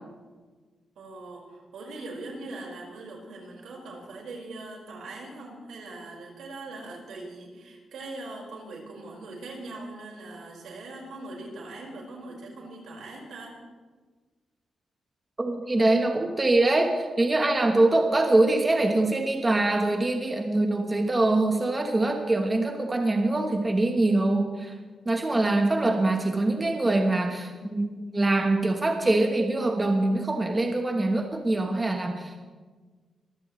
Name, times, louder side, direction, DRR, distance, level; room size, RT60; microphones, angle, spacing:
voice 1, 0.9-13.6, right 2 dB, 80° right, -1 dB, 4.9 m, -41 dB
voice 2, 15.4-24.7 25.0-32.4, right 2 dB, 20° right, 3 dB, 1.1 m, -24 dB
23.5 x 15.5 x 3.2 m, 1.4 s
wide cardioid pair, 160°, 0 cm